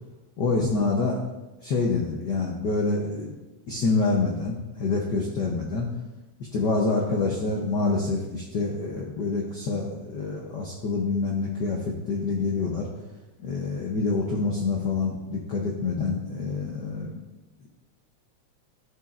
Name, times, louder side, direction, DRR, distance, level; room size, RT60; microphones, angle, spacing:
voice 1, 0.4-1.2 1.6-3.4 3.7-5.9 6.5-11.8 12.1-12.9 13.4-17.2, left 3 dB, 85° left, -2 dB, 0.9 m, -26 dB
12.5 x 7.2 x 2.6 m, 1.0 s
omnidirectional pair, 3.3 m